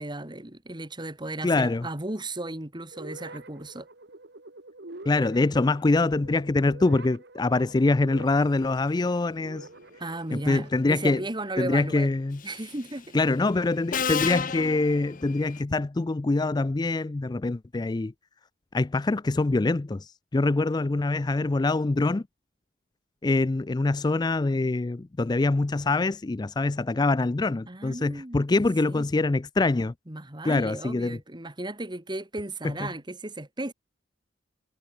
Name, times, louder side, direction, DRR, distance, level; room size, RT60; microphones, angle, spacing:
voice 1, 0.0-3.9 10.0-12.1 12.4-13.2 27.7-29.1 30.1-33.7, right 2 dB, 25° right, 2.2 m, -35 dB
voice 2, 1.4-1.9 5.1-9.7 10.3-11.2 11.6-12.4 13.1-18.1 18.7-22.2 23.2-29.9 30.4-31.2 32.6-32.9, left 2 dB, 20° left, 0.4 m, -24 dB
sound 1, 2.9-10.9, right 2 dB, 60° right, 2.2 m, -46 dB
Subway metro underground, 12.4-12.8 13.9-15.6, left 6 dB, 45° left, 1.0 m, -31 dB
head